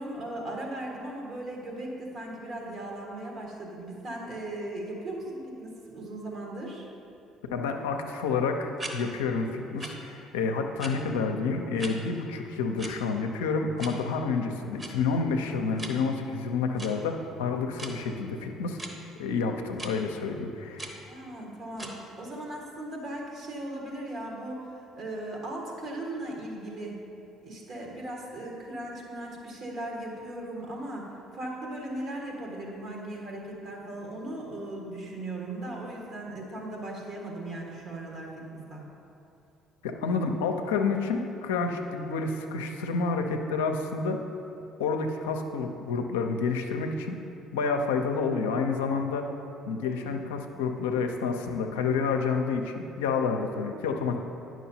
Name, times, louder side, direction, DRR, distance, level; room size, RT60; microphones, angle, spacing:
voice 1, 0.0-6.9 21.0-27.0 27.4-38.8 50.1-50.2, right 1 dB, 55° right, -1 dB, 1.5 m, -38 dB
voice 2, 7.5-18.8 19.2-20.9 39.8-44.2 44.8-47.2 47.5-49.3 49.7-54.2, left 4 dB, 80° left, 4 dB, 0.5 m, -29 dB
sound 1, 8.8-9.0 9.8-9.9 10.8-10.9 11.8-11.9 12.8-12.9 13.8-13.9 14.8-14.9 15.8-15.9 16.7-16.9 17.8-17.9 18.8-18.9 19.8-19.9 20.8-21.0 21.8-21.9, right 2 dB, 25° right, 1.0 m, -38 dB
9.9 x 6.1 x 2.8 m, 2.8 s
hypercardioid pair, 55°, 0 cm